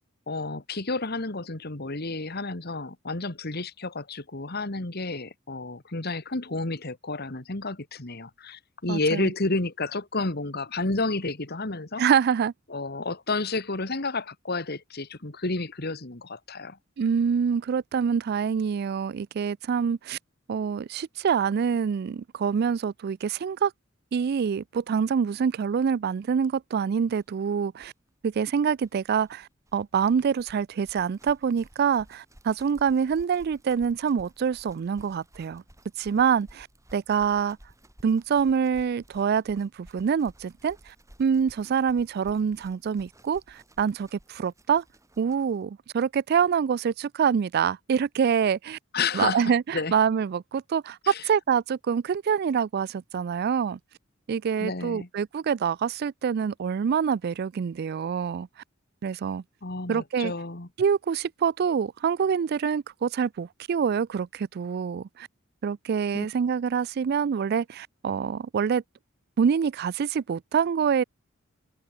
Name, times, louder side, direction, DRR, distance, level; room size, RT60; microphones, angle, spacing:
voice 1, 0.3-12.0 12.7-16.8 48.9-49.9 51.0-51.3 54.6-55.1 59.6-60.7 66.1-66.3, left 3 dB, 50° left, 2.1 m, -31 dB
voice 2, 8.9-9.3 12.0-12.5 17.0-20.2 20.5-23.7 24.1-27.9 28.2-35.6 36.0-36.7 36.9-37.6 38.0-40.9 41.2-44.8 45.2-48.8 49.1-53.8 54.3-58.5 59.0-59.4 59.9-60.3 60.8-65.3 65.6-68.8 69.4-71.0, right 7 dB, 50° right, 0.3 m, -26 dB
sound 1, 27.2-27.3 27.5-27.6 27.8-45.6, right 1 dB, 15° right, 4.9 m, -55 dB
open air
head